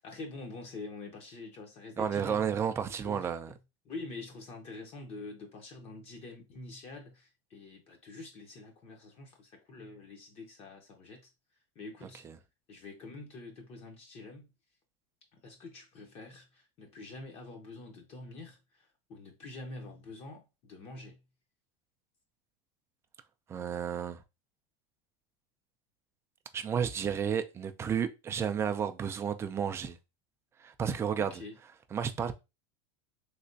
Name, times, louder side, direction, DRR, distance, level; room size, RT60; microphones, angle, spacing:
voice 1, 0.0-2.5 2.8-3.6 3.8-11.3 11.7-12.2 12.7-14.5 15.3-21.2 31.2-31.6, left 3 dB, 35° left, 0.8 m, -46 dB
voice 2, 2.0-3.5 23.5-24.2 26.5-30.0 30.6-31.3 31.9-32.3, right 7 dB, 15° right, 0.3 m, -32 dB
3.3 x 2.9 x 2.7 m
supercardioid pair, 140°, 17 cm